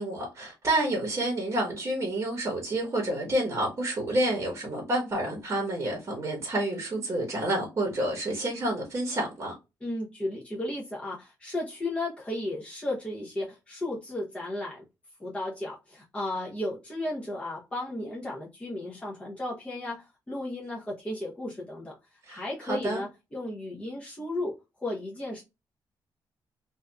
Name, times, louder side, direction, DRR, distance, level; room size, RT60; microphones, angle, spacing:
voice 1, 0.0-9.5 22.2-22.4 22.7-23.0, right 1 dB, 30° right, 1.0 m, -29 dB
voice 2, 9.8-14.8 15.2-22.0 22.3-25.4, left 1 dB, 15° left, 0.7 m, -34 dB
2.6 x 2.4 x 2.2 m
cardioid pair, 125°, 8 cm